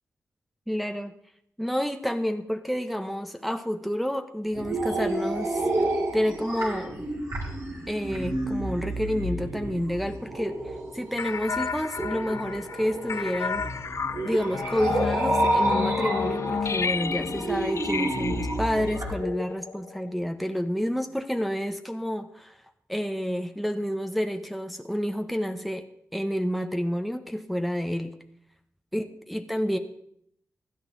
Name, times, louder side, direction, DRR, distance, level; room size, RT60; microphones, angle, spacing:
voice 1, 0.7-1.1 1.6-5.6 6.1-7.0 7.9-10.6 10.9-13.7 14.2-22.6 22.9-28.2 28.9-29.8, equal, ahead, 6 dB, 1.1 m, -29 dB
sound 1, 4.5-19.1, right 2 dB, 65° right, 5.7 m, -30 dB
sound 2, 11.2-20.1, left 5 dB, 55° left, 0.5 m, -31 dB
16.5 x 11.0 x 4.1 m, 0.70 s
cardioid pair, 50°, 6 cm